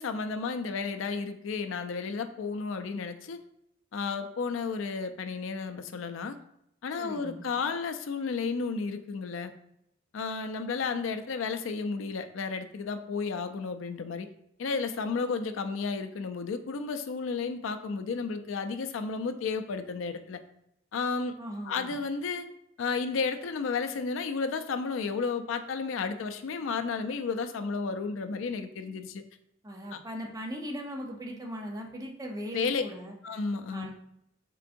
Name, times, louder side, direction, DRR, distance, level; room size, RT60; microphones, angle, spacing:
voice 1, 0.0-3.4 3.9-6.4 6.8-9.5 10.1-14.3 14.6-20.4 20.9-21.4 21.7-22.5 22.8-29.2 29.9-30.0 32.5-32.8 33.2-33.9, left 4 dB, 80° left, 9 dB, 0.4 m, -32 dB
voice 2, 7.0-7.5 21.4-21.9 29.6-33.1 33.7-33.9, equal, 20° right, 0 dB, 0.6 m, -39 dB
4.4 x 3.7 x 2.5 m, 0.76 s
head